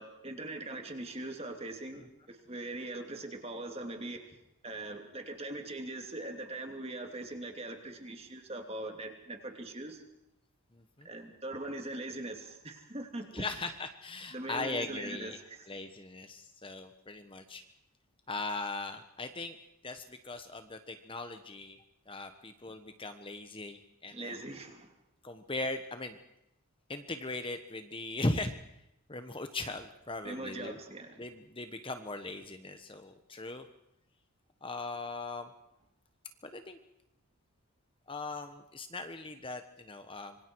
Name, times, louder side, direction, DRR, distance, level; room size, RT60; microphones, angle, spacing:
voice 1, 0.0-4.2 4.6-10.0 11.0-13.7 14.3-15.7 24.1-24.9 30.2-31.2, right 2 dB, 25° right, 4 dB, 3.0 m, -41 dB
voice 2, 10.7-11.1 13.3-15.4 15.7-17.6 18.3-19.6 19.8-21.8 22.1-24.4 25.2-26.2 26.9-28.5 29.1-30.8 31.2-33.7 34.6-35.5 36.4-36.8 38.1-40.4, left 2 dB, 25° left, 8 dB, 1.2 m, -39 dB
26.5 x 24.0 x 4.8 m, 0.82 s
head